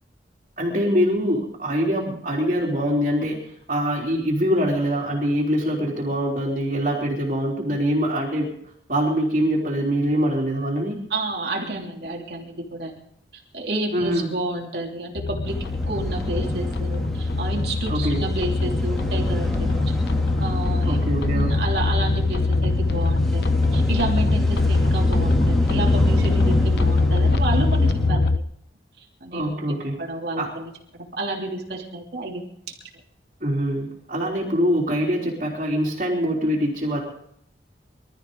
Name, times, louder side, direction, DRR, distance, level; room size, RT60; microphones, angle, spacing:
voice 1, 0.6-3.4 3.7-8.5 8.9-11.0 13.9-14.3 17.9-18.2 20.9-21.5 29.3-30.0 30.4-30.5 33.4-37.0, equal, 45° right, -7 dB, 3.7 m, -23 dB
voice 2, 11.1-12.9 13.3-15.6 15.9-19.8 20.4-21.0 21.3-28.3 29.2-29.5 30.0-30.7 31.0-32.5, right 2 dB, 60° right, 0 dB, 3.0 m, -30 dB
sound 1, 15.2-28.4, left 3 dB, 60° left, 0.9 m, -22 dB
sound 2, 15.4-28.1, equal, ahead, 2.6 m, -30 dB
24.0 x 13.5 x 3.9 m, 0.70 s
head